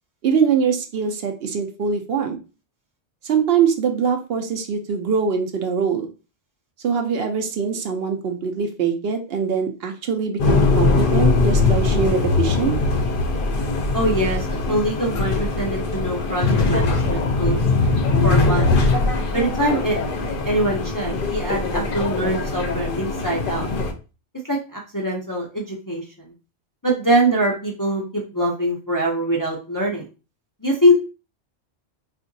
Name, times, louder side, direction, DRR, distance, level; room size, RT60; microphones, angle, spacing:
voice 1, 0.2-2.4 3.2-6.1 6.8-12.8, right 6 dB, 65° right, 4 dB, 0.8 m, -23 dB
sound 1, 10.4-23.9, left 3 dB, 60° left, 0.7 m, -21 dB
voice 2, 13.9-17.6 18.2-18.7 19.3-20.0 20.4-23.7 24.5-26.3 26.8-30.1 30.6-30.9, right 1 dB, 25° left, -2 dB, 0.4 m, -23 dB
3.7 x 2.5 x 2.6 m, 0.32 s
omnidirectional pair, 1.2 m